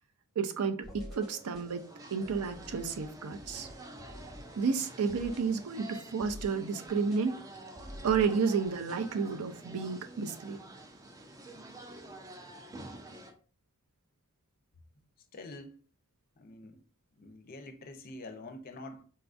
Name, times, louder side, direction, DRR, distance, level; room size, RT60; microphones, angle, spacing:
voice 1, 0.4-1.8 2.1-3.7 4.6-7.3 8.0-10.6, right 5 dB, 75° right, 0.5 m, -31 dB
sound 1, 0.8-9.1, left 1 dB, ahead, 0.8 m, -50 dB
sound 2, 1.2-13.3, right 1 dB, 15° right, 0.3 m, -49 dB
voice 2, 15.3-15.8 16.4-16.8 17.1-19.0, left 2 dB, 40° left, 0.5 m, -46 dB
4.1 x 2.4 x 2.4 m
head